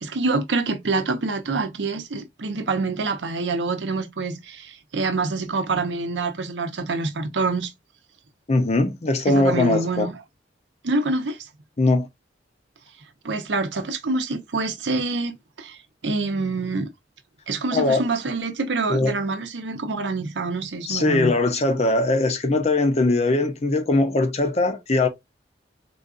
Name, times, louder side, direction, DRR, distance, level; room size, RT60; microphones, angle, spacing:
voice 1, 0.0-7.7 9.3-10.1 10.8-11.4 13.2-16.9 17.5-21.3, right 3 dB, 80° right, 0.7 m, -26 dB
voice 2, 8.5-10.1 11.8-12.1 17.7-18.0 18.9-19.1 20.8-25.1, left 2 dB, 35° left, 0.6 m, -21 dB
3.8 x 2.5 x 2.4 m
head